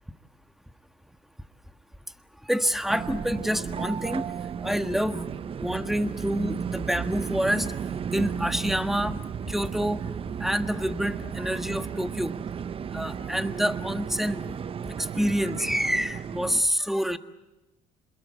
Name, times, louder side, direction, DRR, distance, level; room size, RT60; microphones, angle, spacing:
voice 1, 2.5-4.2 4.6-5.3 5.6-7.7 8.1-9.2 9.5-10.0 10.4-12.3 12.9-14.4 14.9-17.2, equal, ahead, 9 dB, 1.5 m, -27 dB
sound 1, 2.9-16.6, right 7 dB, 40° right, 0.8 m, -34 dB
27.5 x 21.5 x 8.1 m, 1.0 s
supercardioid pair, 85°, 15 cm